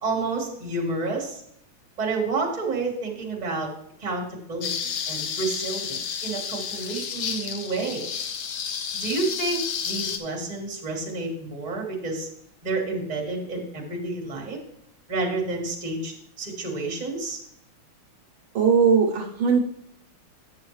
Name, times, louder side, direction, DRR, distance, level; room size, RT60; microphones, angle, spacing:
voice 1, 0.0-1.4 2.0-3.7 4.0-8.1 8.9-12.3 12.6-14.6 15.1-17.4, right 3 dB, 20° right, -1 dB, 1.4 m, -30 dB
sound 1, 4.6-10.2, left 7 dB, 70° left, 0.9 m, -31 dB
voice 2, 18.5-19.6, right 6 dB, 70° right, 1 dB, 1.6 m, -19 dB
9.4 x 7.0 x 3.2 m, 0.71 s
omnidirectional pair, 2.4 m